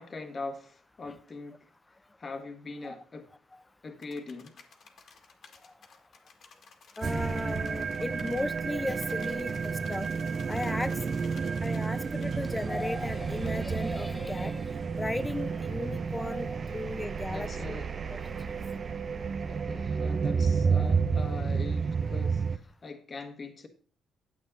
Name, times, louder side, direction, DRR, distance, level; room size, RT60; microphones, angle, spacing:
voice 1, 0.0-1.6 2.2-3.3 3.8-4.6 17.3-17.9 19.5-23.7, left 3 dB, 40° left, 1.4 m, -42 dB
sound 1, 4.0-8.5 9.0-11.9 12.2-12.4 13.4-13.6, left 5 dB, 60° left, 1.8 m, -55 dB
voice 2, 7.0-9.5 9.9-10.1 10.5-11.0 11.6-14.6 15.0-17.8 18.1-18.4 20.6-20.9 21.2-21.4, left 2 dB, 15° left, 0.5 m, -35 dB
sound 2, 7.0-22.6, right 5 dB, 45° right, 0.6 m, -31 dB
9.3 x 8.6 x 4.0 m
cardioid pair, 90°, 0 cm